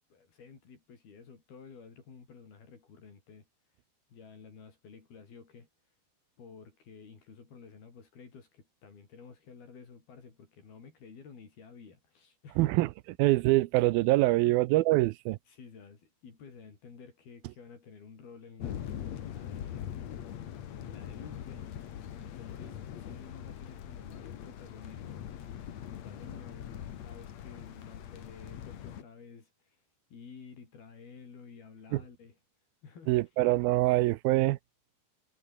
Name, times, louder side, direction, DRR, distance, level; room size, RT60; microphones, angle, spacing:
voice 1, 0.1-3.5 4.1-5.7 6.4-12.8 14.5-14.6 15.5-19.9 20.8-25.4 25.9-29.8 30.1-32.4 32.8-33.2, left 5 dB, 75° left, 7.0 m, -52 dB
voice 2, 12.6-12.9 13.2-15.4 31.9-32.0 33.1-34.6, right 18 dB, 80° right, 2.5 m, -24 dB
sound 1, 18.6-29.0, left 10 dB, 55° left, 2.4 m, -42 dB
omnidirectional pair, 4.4 m